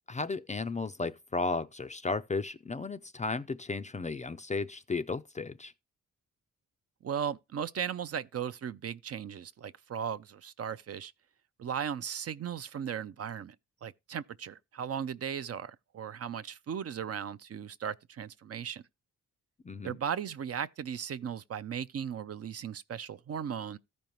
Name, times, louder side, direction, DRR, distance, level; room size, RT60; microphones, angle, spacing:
voice 1, 0.1-5.7 19.6-20.0, left 3 dB, 20° left, 0.4 m, -34 dB
voice 2, 7.0-11.1 11.6-13.5 13.8-18.8 19.8-23.8, right 8 dB, 45° right, 0.5 m, -37 dB
14.5 x 5.2 x 3.0 m
cardioid pair, 100°, 33 cm